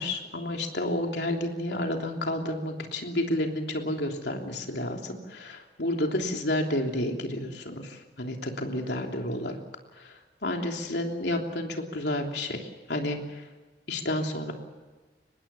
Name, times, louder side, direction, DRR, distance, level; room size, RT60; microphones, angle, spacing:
voice 1, 0.0-9.5 10.0-13.4 13.9-14.5, left 1 dB, 75° left, 2 dB, 3.2 m, -30 dB
25.0 x 20.5 x 7.1 m, 1.3 s
head